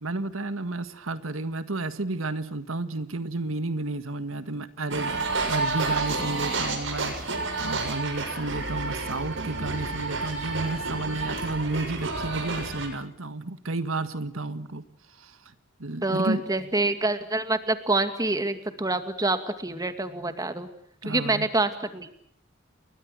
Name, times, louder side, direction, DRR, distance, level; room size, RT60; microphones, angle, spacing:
voice 1, 0.0-15.5 15.8-16.4 21.0-21.5, right 2 dB, 80° right, 11 dB, 1.7 m, -32 dB
sound 1, 4.9-12.9, right 3 dB, 60° right, 7.3 m, -30 dB
voice 2, 16.0-20.7 21.0-22.1, right 2 dB, 20° right, 9 dB, 2.3 m, -26 dB
30.0 x 23.0 x 6.3 m, 0.68 s
head